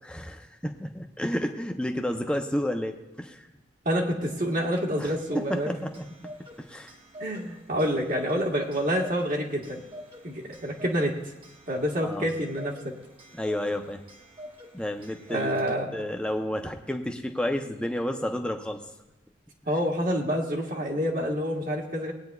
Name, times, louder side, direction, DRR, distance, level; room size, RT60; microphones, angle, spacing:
voice 1, 0.0-3.4 5.0-6.0 6.6-6.9 12.0-12.3 13.4-14.0 14.7-18.8, left 1 dB, 5° left, 4 dB, 0.7 m, -31 dB
voice 2, 3.8-5.7 7.2-9.8 10.2-11.2 11.7-12.9 15.3-15.9 19.7-22.1, equal, 45° right, 0 dB, 1.4 m, -27 dB
Clock, 4.5-16.1, equal, 30° right, 1.2 m, -47 dB
20.0 x 9.3 x 2.3 m, 1.0 s
head